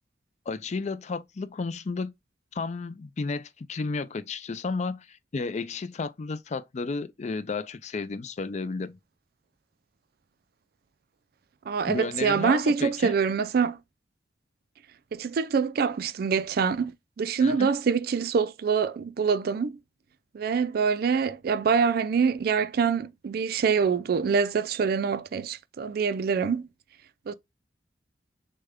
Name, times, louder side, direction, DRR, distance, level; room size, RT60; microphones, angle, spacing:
voice 1, 0.5-2.1 2.5-9.0 11.9-13.1 17.4-17.7, left 4 dB, 40° left, 0.4 m, -32 dB
voice 2, 11.7-13.8 15.1-19.8 20.3-26.6 27.3-27.4, right 6 dB, 55° right, 0.3 m, -25 dB
6.6 x 2.2 x 3.5 m
head